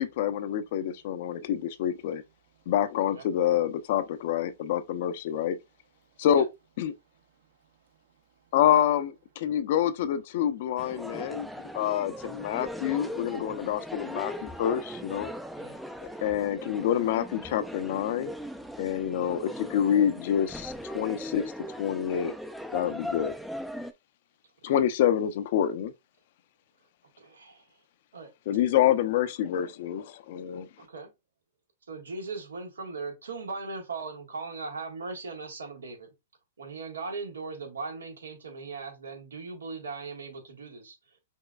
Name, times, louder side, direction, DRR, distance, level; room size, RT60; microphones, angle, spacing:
voice 1, 0.0-2.2 2.7-5.6 6.2-6.5 6.8-6.9 8.5-11.5 11.7-15.3 16.2-18.3 18.8-21.4 21.8-22.3 22.7-23.3 24.6-25.9 28.5-30.7, left 10 dB, 55° left, 0.6 m, -27 dB
voice 2, 0.5-1.0 1.2-1.5 2.4-2.7 6.0-6.3 7.1-8.5 9.5-9.6 10.9-12.6 13.4-14.6 15.2-16.3, right 7 dB, 65° right, 1.4 m, -67 dB
sound 1, 10.8-23.9, equal, ahead, 0.4 m, -39 dB
voice 3, 27.2-27.7 28.1-28.3 30.8-31.1 31.9-36.1 36.6-40.9, right 4 dB, 85° right, 1.7 m, -39 dB
5.4 x 3.0 x 2.3 m
hypercardioid pair, 120°, 0 cm